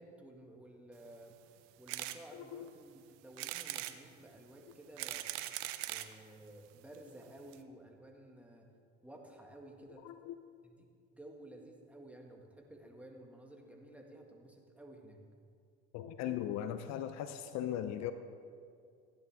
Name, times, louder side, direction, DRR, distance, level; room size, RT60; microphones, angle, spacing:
voice 1, 0.0-1.4 1.8-5.3 5.9-8.7 9.0-10.0 10.6-15.2, right 1 dB, 5° right, 1 dB, 2.0 m, -54 dB
sound 1, 1.9-2.2 2.7-2.8 3.4-4.0 4.7-6.1 6.9-7.0 7.2-7.3 7.5-7.6, right 15 dB, 75° right, 0.7 m, -40 dB
voice 2, 2.3-2.7 10.0-10.3 15.9-18.1, left 11 dB, 60° left, 10 dB, 0.7 m, -38 dB
15.5 x 10.5 x 3.6 m, 2.3 s
supercardioid pair, 90°, 30 cm